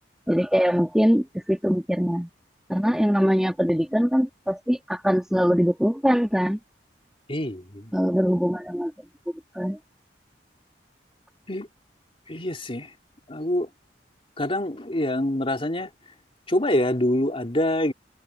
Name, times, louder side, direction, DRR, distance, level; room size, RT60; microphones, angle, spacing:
voice 1, 0.3-2.3 2.7-6.6 7.9-8.9 9.6-9.8, equal, 5° right, 1.7 m, -22 dB
voice 2, 7.3-7.9 11.5-11.7 12.3-12.9 13.3-13.7 14.4-15.9 16.5-17.9, left 1 dB, 30° left, 3.2 m, -25 dB
head